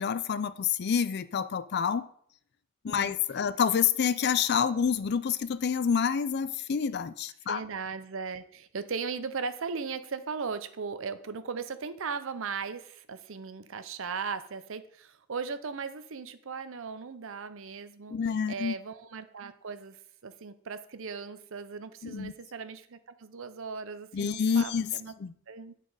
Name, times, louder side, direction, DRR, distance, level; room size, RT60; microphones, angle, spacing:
voice 1, 0.0-2.1 2.8-7.6 18.1-18.7 22.0-22.3 24.1-24.9 25.2-25.3, left 7 dB, 50° left, 15 dB, 0.4 m, -28 dB
voice 2, 7.5-18.2 18.5-25.1 25.5-25.7, right 5 dB, 65° right, 12 dB, 0.6 m, -38 dB
9.0 x 4.2 x 4.9 m, 0.62 s
head